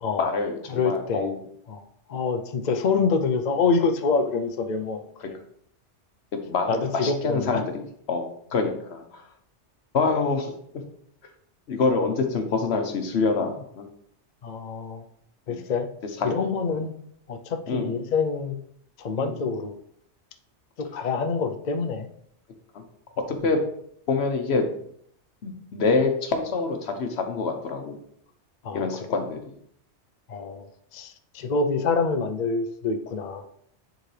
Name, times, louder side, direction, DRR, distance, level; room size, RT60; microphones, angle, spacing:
voice 1, 0.2-1.4 6.5-9.2 9.9-10.5 11.7-13.9 15.5-15.6 16.2-16.3 17.7-18.0 19.2-19.3 22.7-22.8 23.3-23.6 24.1-24.6 25.4-28.0 28.7-29.4, left 4 dB, 70° left, 5 dB, 1.2 m, -26 dB
voice 2, 0.7-1.3 1.7-1.8 2.1-5.0 6.7-7.6 14.4-15.0 15.5-15.9 16.2-16.9 17.3-18.6 19.0-19.7 20.8-22.1 28.6-29.2 30.3-30.6 30.9-33.4, left 4 dB, 50° left, 5 dB, 0.6 m, -26 dB
9.3 x 3.8 x 3.2 m, 0.67 s
omnidirectional pair, 1.2 m